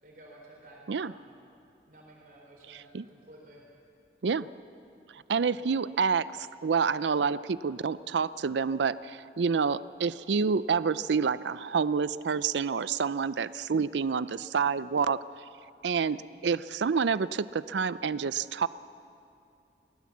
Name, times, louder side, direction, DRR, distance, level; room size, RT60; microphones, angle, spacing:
voice 1, 0.0-1.3 1.9-3.6 5.5-5.7 16.2-16.6, right 1 dB, 50° right, -2 dB, 4.0 m, -53 dB
voice 2, 2.7-3.0 4.2-4.5 5.1-15.2 15.8-18.7, right 5 dB, 85° right, 16 dB, 0.5 m, -28 dB
23.0 x 17.0 x 7.3 m, 2.6 s
head